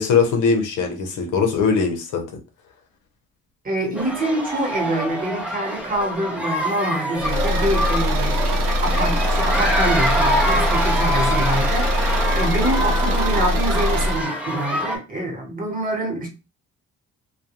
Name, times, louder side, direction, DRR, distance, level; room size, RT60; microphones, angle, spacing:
voice 1, 0.0-2.2, left 5 dB, 85° left, 2 dB, 0.7 m, -20 dB
voice 2, 3.6-16.3, right 1 dB, 25° right, 1 dB, 1.2 m, -26 dB
sound 1, 4.0-15.0, equal, 5° right, 0.7 m, -25 dB
Car / Engine, 7.2-14.2, equal, 90° right, 0.6 m, -22 dB
2.3 x 2.2 x 2.9 m, 0.30 s
cardioid pair, 90°, 30 cm